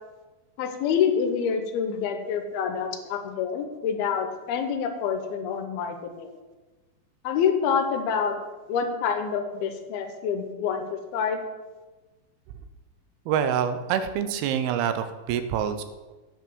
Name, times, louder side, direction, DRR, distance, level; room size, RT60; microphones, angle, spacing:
voice 1, 0.6-6.3 7.2-8.4 8.7-11.4, left 7 dB, 85° left, 6 dB, 2.8 m, -27 dB
voice 2, 13.3-15.8, right 8 dB, 90° right, 9 dB, 2.7 m, -26 dB
9.1 x 6.0 x 6.1 m, 1.2 s
omnidirectional pair, 4.3 m